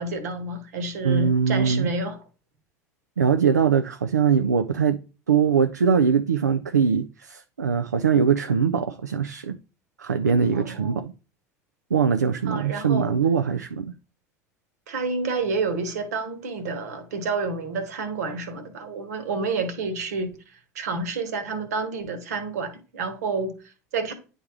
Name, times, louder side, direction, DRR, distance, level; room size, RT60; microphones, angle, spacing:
voice 1, 0.0-2.2 10.5-11.0 12.5-13.1 14.9-24.1, right 3 dB, 75° right, 1.3 m, -29 dB
voice 2, 1.0-1.9 3.2-5.0 5.3-9.6 10.0-11.1 11.9-13.9, right 6 dB, 90° right, 0.3 m, -22 dB
9.6 x 3.5 x 3.6 m
hypercardioid pair, 75°, 9 cm